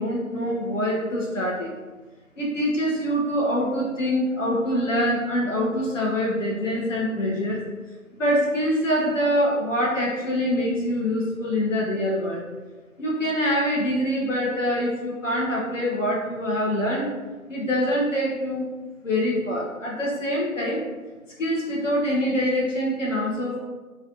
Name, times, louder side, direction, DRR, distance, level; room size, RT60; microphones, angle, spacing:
voice 1, 0.0-1.7 2.4-7.6 8.2-12.4 13.0-17.1 17.5-18.7 19.0-20.8 21.4-23.6, equal, 65° left, -3 dB, 1.0 m, -24 dB
3.1 x 2.5 x 2.8 m, 1.3 s
figure-of-eight pair, 160°, 41 cm